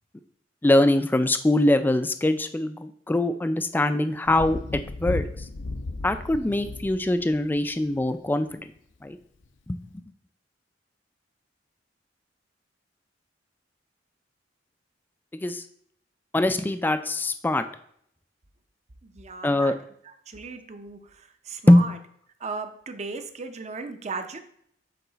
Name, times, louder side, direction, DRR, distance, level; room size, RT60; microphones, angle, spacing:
voice 1, 0.6-5.3 6.0-8.6 9.0-9.2 9.7-9.8 15.3-15.6 16.3-17.6 19.4-19.7 21.7-21.9, left 1 dB, 10° left, 10 dB, 0.3 m, -22 dB
Thunder, 4.3-8.1 9.4-9.5, left 2 dB, 80° left, 0.6 m, -35 dB
voice 2, 19.0-19.8 20.0-22.0 22.4-24.4, right 4 dB, 35° right, 8 dB, 0.6 m, -37 dB
6.7 x 4.1 x 4.0 m, 0.67 s
head